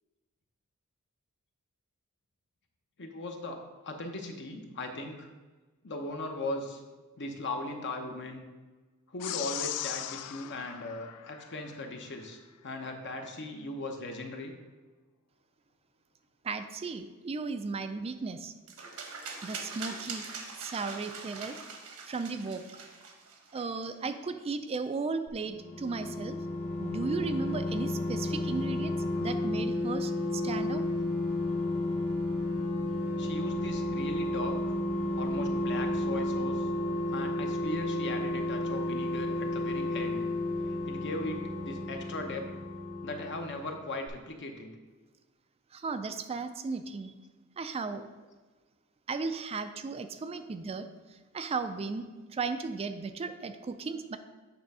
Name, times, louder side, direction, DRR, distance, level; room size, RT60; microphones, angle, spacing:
voice 1, 3.0-5.3 5.8-6.8 7.2-8.4 9.1-14.5 33.2-34.8 35.2-36.7 37.1-40.2 40.7-42.4 43.0-44.7, left 2 dB, 55° left, 3 dB, 0.9 m, -38 dB
sound 1, 9.2-11.9, left 12 dB, 90° left, 0.4 m, -38 dB
voice 2, 16.4-18.5 19.4-20.2 20.6-21.6 22.1-22.6 23.5-26.4 26.8-30.8 45.7-47.1 47.6-48.0 49.1-52.0 52.3-54.2, right 4 dB, 25° right, 9 dB, 0.3 m, -35 dB
sound 2, 18.7-23.9, right 4 dB, 80° right, 1.2 m, -43 dB
sound 3, 25.3-43.8 44.1-44.2, left 1 dB, 70° left, 1.7 m, -32 dB
8.7 x 3.5 x 5.4 m, 1.3 s
head